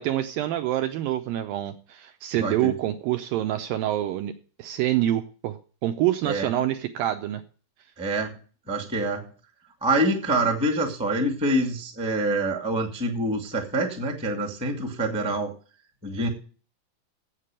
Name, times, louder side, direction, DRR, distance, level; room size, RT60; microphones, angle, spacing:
voice 1, 0.0-4.3 4.6-7.4, right 13 dB, 75° right, 7 dB, 2.2 m, -26 dB
voice 2, 2.3-2.7 6.2-6.5 8.0-8.3 8.7-9.3 9.8-15.5 16.0-16.3, right 1 dB, 5° right, 1 dB, 0.9 m, -26 dB
8.3 x 7.6 x 8.8 m, 0.39 s
omnidirectional pair, 4.6 m